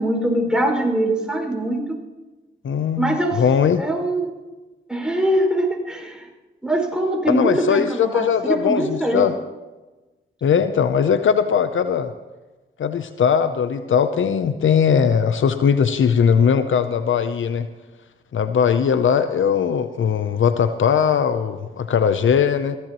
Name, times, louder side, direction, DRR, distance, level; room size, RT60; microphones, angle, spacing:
voice 1, 0.0-1.8 3.0-3.4 3.7-4.4 4.9-6.3 6.6-9.2, right 1 dB, 5° right, 1 dB, 5.7 m, -22 dB
voice 2, 2.6-3.8 7.3-9.3 10.4-12.1 12.8-17.7 18.3-22.8, left 7 dB, 70° left, 10 dB, 0.7 m, -19 dB
22.5 x 16.5 x 3.1 m, 1.2 s
cardioid pair, 55°, 21 cm